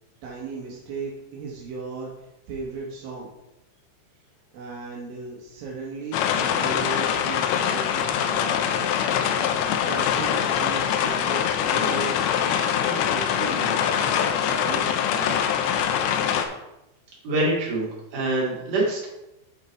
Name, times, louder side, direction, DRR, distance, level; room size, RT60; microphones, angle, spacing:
voice 1, 0.2-3.3 4.5-13.8 14.4-15.5, right 4 dB, 75° right, -4 dB, 2.1 m, -36 dB
sound 1, 6.1-16.4, left 8 dB, 85° left, 2.5 m, -23 dB
voice 2, 17.2-17.9 18.1-19.1, right 2 dB, 40° right, -4 dB, 2.8 m, -24 dB
12.0 x 4.2 x 4.5 m, 0.92 s
omnidirectional pair, 5.9 m